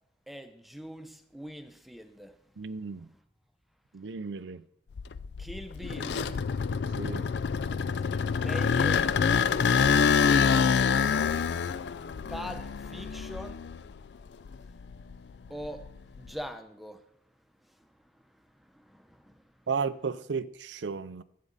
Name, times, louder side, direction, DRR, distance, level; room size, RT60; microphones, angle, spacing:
voice 1, 0.3-3.2 5.4-6.4 8.3-9.4 12.0-13.6 15.5-15.9 16.2-17.1 17.6-19.6, equal, ahead, 0.8 m, -43 dB
voice 2, 2.6-3.1 3.9-4.6 7.0-7.3 19.7-21.2, right 5 dB, 85° right, 0.5 m, -34 dB
sound 1, 5.0-14.0 14.5-16.3, left 6 dB, 75° left, 0.4 m, -26 dB
13.0 x 8.5 x 4.0 m
head